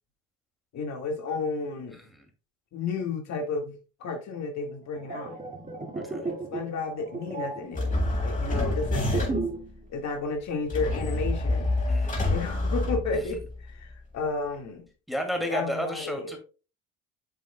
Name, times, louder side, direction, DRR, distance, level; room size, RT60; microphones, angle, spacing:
voice 1, 0.7-2.0 2.7-5.4 6.2-9.4 9.9-11.7 12.3-14.8 15.4-16.3, left 4 dB, 50° left, 3 dB, 1.9 m, -32 dB
sound 1, 4.8-9.7 10.0-10.2, right 3 dB, 25° right, 1.8 m, -35 dB
sound 2, 7.7-9.6 10.7-13.5, left 2 dB, 25° left, 4.1 m, -27 dB
voice 2, 11.9-12.3 13.1-13.2 15.1-16.4, equal, ahead, 3 dB, 2.2 m, -32 dB
8.3 x 7.2 x 2.2 m, 0.33 s
supercardioid pair, 85°, 34 cm